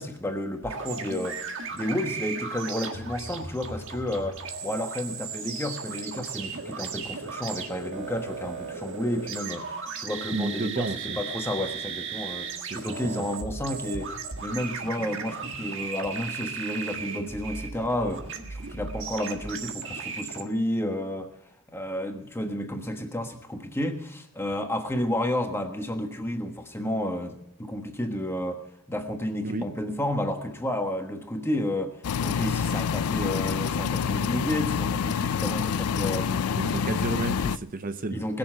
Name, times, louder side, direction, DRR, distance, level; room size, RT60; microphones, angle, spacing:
voice 1, 0.0-1.4 1.7-14.1 14.4-21.3 21.7-28.6 28.9-31.9 32.2-36.7 38.1-38.4, left 1 dB, 10° left, 5 dB, 1.3 m, -31 dB
sound 1, 0.6-20.4, right 5 dB, 60° right, 1.7 m, -36 dB
voice 2, 10.3-11.2 12.6-13.3 29.4-29.7 36.5-38.2, right 3 dB, 40° right, 10 dB, 0.7 m, -32 dB
sound 2, 32.0-37.6, left 7 dB, 80° left, 0.4 m, -27 dB
20.5 x 7.1 x 7.8 m, 0.82 s
head